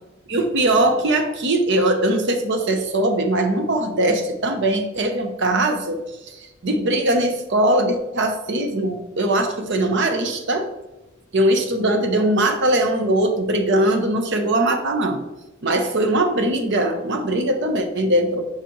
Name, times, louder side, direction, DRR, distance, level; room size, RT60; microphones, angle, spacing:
voice 1, 0.3-6.0 6.3-10.7 11.3-15.2 15.6-18.4, right 1 dB, 60° right, 6 dB, 0.8 m, -21 dB
6.9 x 4.9 x 3.1 m, 1.0 s
head